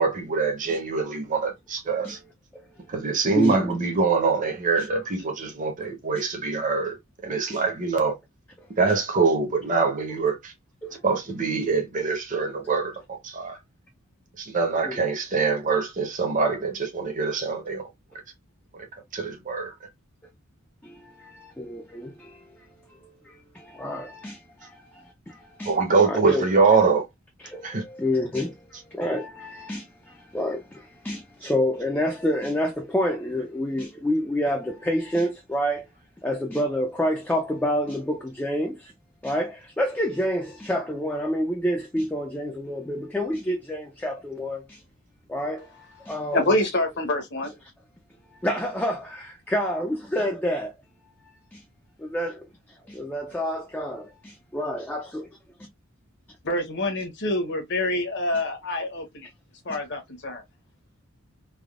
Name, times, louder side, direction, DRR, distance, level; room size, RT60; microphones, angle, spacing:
voice 1, 0.0-2.2 2.9-7.0 7.2-8.2 8.8-10.5 11.0-13.6 14.4-17.8 19.1-19.7 25.6-27.1 27.6-27.8, right 4 dB, 35° right, 0.7 m, -24 dB
voice 2, 3.4-3.7 4.7-4.9 6.1-6.2 7.5-7.6 8.9-9.0 10.8-10.9 14.8-15.0 20.8-20.9 21.3-22.3 23.5-24.7 25.3-25.4 25.6-25.7 26.0-26.4 27.4-28.5 29.0-29.8 30.3-30.8 31.0-35.8 36.2-38.9 39.2-44.8 45.3-45.7 46.1-46.5 47.5-47.6 48.4-50.7 51.5-51.6 52.0-52.4 52.9-55.3, equal, 5° left, 0.3 m, -28 dB
voice 3, 46.3-47.5 56.4-59.3 59.7-60.4, left 1 dB, 50° left, 0.9 m, -26 dB
3.4 x 2.2 x 2.3 m
head